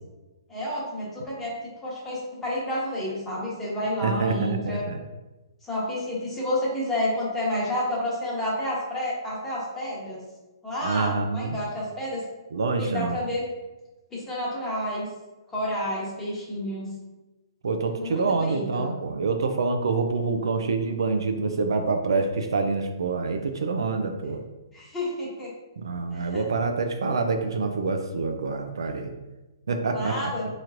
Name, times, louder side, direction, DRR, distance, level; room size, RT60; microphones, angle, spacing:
voice 1, 0.5-1.5 1.8-4.8 5.6-10.2 10.6-12.2 12.7-13.4 14.1-15.1 15.5-16.9 18.0-18.9 24.7-25.5 26.1-26.4 29.9-30.5, left 1 dB, 10° left, -7 dB, 1.2 m, -30 dB
voice 2, 4.0-5.0 10.8-11.6 12.5-13.2 17.6-24.4 25.8-29.1 29.7-30.3, right 4 dB, 80° right, 5 dB, 0.4 m, -26 dB
4.3 x 3.1 x 2.5 m, 1.1 s
hypercardioid pair, 150°, 2 cm